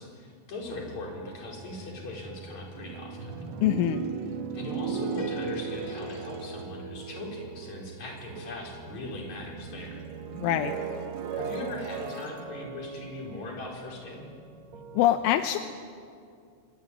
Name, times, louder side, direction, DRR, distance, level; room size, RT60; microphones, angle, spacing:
voice 1, 0.0-3.4 4.5-10.0 11.4-14.3, left 2 dB, 35° left, -1 dB, 5.7 m, -40 dB
sound 1, 0.6-15.0, right 4 dB, 55° right, 2.0 m, -48 dB
sound 2, 1.1-8.7 9.0-14.1, right 6 dB, 80° right, 4.4 m, -37 dB
voice 2, 3.6-4.1 10.4-10.8 14.9-15.6, left 12 dB, 80° left, 8 dB, 3.2 m, -24 dB
Piano, 5.2-8.9, left 2 dB, 55° left, 2.5 m, -44 dB
26.0 x 22.5 x 9.8 m, 2.3 s
omnidirectional pair, 5.6 m